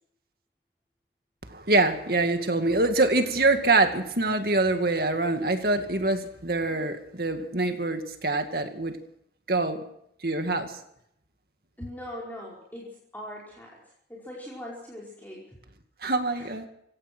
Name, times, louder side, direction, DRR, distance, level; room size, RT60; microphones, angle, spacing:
voice 1, 1.5-9.0 9.5-9.8 10.2-10.8 16.0-16.7, right 2 dB, 60° right, 6 dB, 2.2 m, -25 dB
voice 2, 11.8-13.8 14.1-15.5 16.3-16.6, left 1 dB, 10° left, -4 dB, 5.1 m, -41 dB
27.5 x 17.0 x 6.2 m, 0.73 s
head